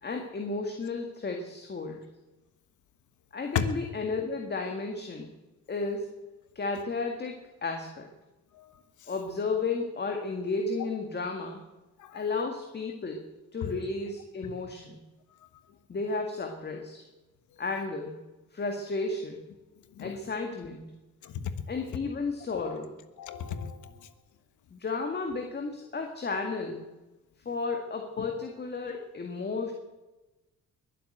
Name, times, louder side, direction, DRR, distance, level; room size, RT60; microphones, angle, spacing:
voice 1, 0.0-2.1 3.3-5.3 5.7-6.2 6.6-8.1 9.1-11.6 12.1-15.0 15.9-17.0 17.6-18.3 18.5-19.4 20.0-20.9 21.7-23.0 24.7-26.9 27.5-29.7, left 3 dB, 35° left, 3 dB, 1.9 m, -33 dB
voice 2, 21.2-21.5 22.5-22.8 23.2-23.9, left 7 dB, 75° left, 10 dB, 1.5 m, -33 dB
21.5 x 7.6 x 8.0 m, 1.1 s
cardioid pair, 90°, 30 cm